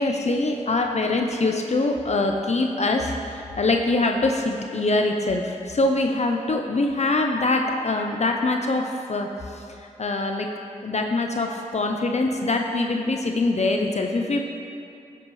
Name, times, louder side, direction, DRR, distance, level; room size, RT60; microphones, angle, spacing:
voice 1, 0.0-10.5 10.8-14.4, left 2 dB, 50° left, 3 dB, 0.7 m, -24 dB
12.0 x 7.8 x 3.3 m, 2.5 s
cardioid pair, 50°, 15 cm